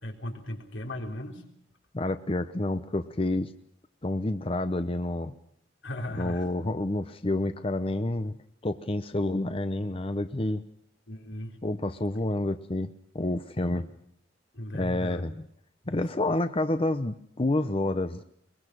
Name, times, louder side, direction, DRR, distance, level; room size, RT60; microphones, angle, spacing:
voice 1, 0.0-1.4 5.8-6.5 11.1-11.6 13.7-13.8 14.5-15.2 15.8-16.0, left 1 dB, 85° left, 2 dB, 3.9 m, -37 dB
voice 2, 1.9-3.5 4.0-5.3 6.2-8.4 8.6-10.6 11.6-13.9 14.7-15.3 15.9-18.2, left 2 dB, 30° left, 10 dB, 0.8 m, -29 dB
23.0 x 21.5 x 6.2 m, 0.67 s
head